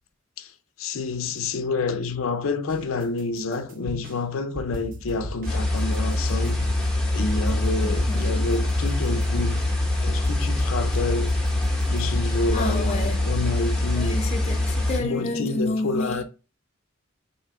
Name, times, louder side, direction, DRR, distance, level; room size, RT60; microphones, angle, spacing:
voice 1, 0.8-6.7 7.1-9.6 10.0-11.4 11.9-14.2 15.0-16.2, left 3 dB, 80° left, 0.5 m, -28 dB
sound 1, 2.7-4.2 4.6-7.0 7.3-13.1, equal, 45° right, 0.7 m, -37 dB
sound 2, 5.5-15.0, left 1 dB, 5° left, 0.8 m, -24 dB
voice 2, 7.8-8.5 12.5-13.3 13.9-16.2, left 2 dB, 35° left, 0.5 m, -30 dB
3.5 x 2.7 x 4.6 m
head